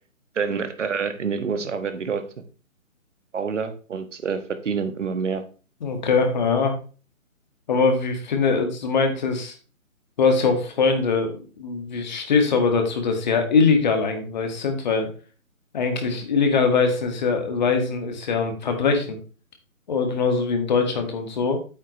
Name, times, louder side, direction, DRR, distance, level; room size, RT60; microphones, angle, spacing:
voice 1, 0.3-2.3 3.3-5.4, right 5 dB, 60° right, 9 dB, 1.5 m, -27 dB
voice 2, 5.8-6.8 7.7-9.6 10.2-15.1 15.7-19.2 19.9-21.6, left 4 dB, 30° left, 5 dB, 1.8 m, -22 dB
9.0 x 7.8 x 3.1 m, 0.36 s
hypercardioid pair, 160°, 42 cm